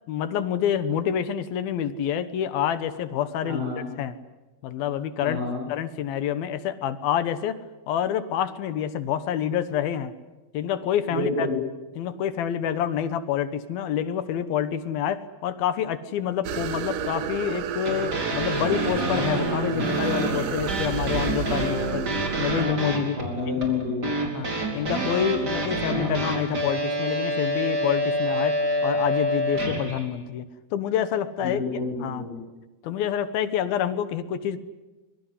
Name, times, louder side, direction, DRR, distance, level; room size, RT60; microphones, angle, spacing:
voice 1, 0.1-3.6 4.0-4.2 4.6-5.4 5.7-7.6 7.9-10.1 10.5-11.5 12.0-22.1 22.4-23.2 24.3-24.5 24.7-28.6 28.8-31.6 32.0-32.3 32.8-34.6, left 9 dB, 75° left, 13 dB, 3.0 m, -27 dB
voice 2, 3.4-3.9 5.2-5.6 11.1-11.5 23.1-24.2 31.4-32.4, left 3 dB, 85° right, 2 dB, 9.7 m, -29 dB
sound 1, 16.4-22.7, right 8 dB, 65° right, 2.7 m, -31 dB
sound 2, 17.8-30.0, equal, 25° right, 4.6 m, -27 dB
25.5 x 22.5 x 9.9 m, 1.1 s
omnidirectional pair, 4.4 m